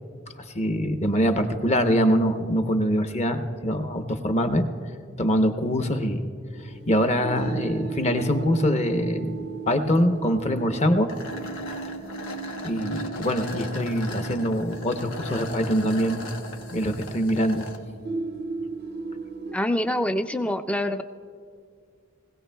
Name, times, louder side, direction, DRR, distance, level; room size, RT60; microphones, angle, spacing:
voice 1, 0.5-4.7 5.2-6.2 6.9-11.1 12.6-16.2 16.7-17.7, equal, 30° left, 7 dB, 0.8 m, -24 dB
sound 1, 6.6-19.5, right 4 dB, 50° right, 0.5 m, -36 dB
sound 2, 11.1-17.8, left 2 dB, 80° left, 1.1 m, -39 dB
voice 2, 19.5-21.0, left 1 dB, 5° left, 10 dB, 0.3 m, -25 dB
20.5 x 16.5 x 2.3 m, 2.2 s
head